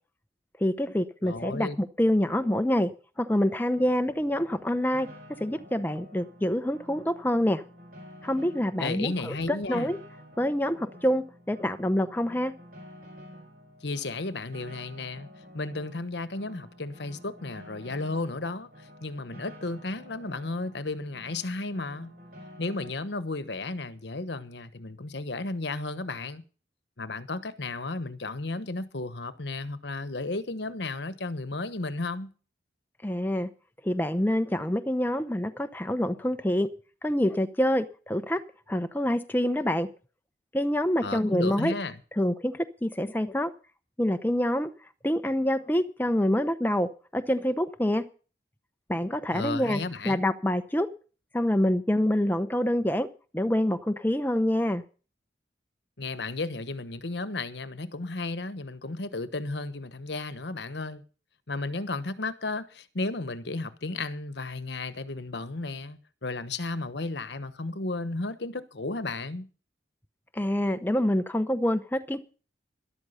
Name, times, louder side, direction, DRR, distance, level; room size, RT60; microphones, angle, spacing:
voice 1, 0.6-2.9 3.2-5.1 5.4-7.6 8.2-10.0 10.4-12.5 33.0-33.5 33.8-36.7 37.0-38.4 38.7-39.9 40.5-41.7 42.2-43.5 44.0-44.7 45.0-48.0 48.9-49.8 50.0-50.9 51.3-53.1 53.3-54.8 70.3-72.2, left 1 dB, 10° left, 0.8 m, -26 dB
voice 2, 1.2-1.8 8.8-9.9 13.8-15.3 15.5-22.1 22.6-26.4 27.0-32.3 41.0-42.0 49.3-50.2 56.0-61.0 61.5-69.5, left 3 dB, 70° left, 1.1 m, -34 dB
Piano, 3.7-22.9, equal, 50° right, 5.0 m, -50 dB
13.0 x 12.0 x 5.7 m
head